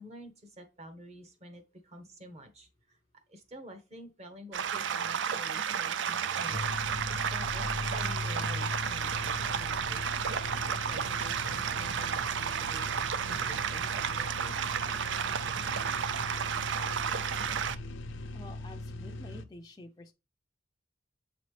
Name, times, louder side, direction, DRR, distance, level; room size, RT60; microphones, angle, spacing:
voice 1, 0.0-3.0 3.3-10.3 10.9-14.6, equal, 35° right, 1.2 m, -49 dB
sound 1, 4.5-17.8, right 8 dB, 75° right, 0.4 m, -32 dB
sound 2, 6.5-19.4, left 2 dB, 90° left, 0.6 m, -39 dB
voice 2, 18.3-20.1, left 2 dB, 20° left, 0.5 m, -48 dB
7.5 x 4.1 x 3.2 m
head